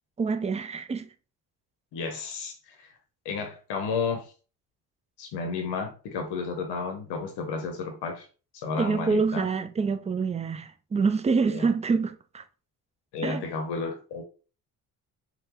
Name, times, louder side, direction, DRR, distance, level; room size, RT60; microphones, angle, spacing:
voice 1, 0.2-1.1 8.8-12.4 13.2-13.4, right 4 dB, 15° right, 0.4 m, -26 dB
voice 2, 1.9-2.9 3.2-4.3 5.2-8.3 8.5-9.5 11.5-11.7 13.1-14.2, left 4 dB, 80° left, 0.8 m, -32 dB
3.8 x 2.2 x 2.9 m
supercardioid pair, 70°, 40 cm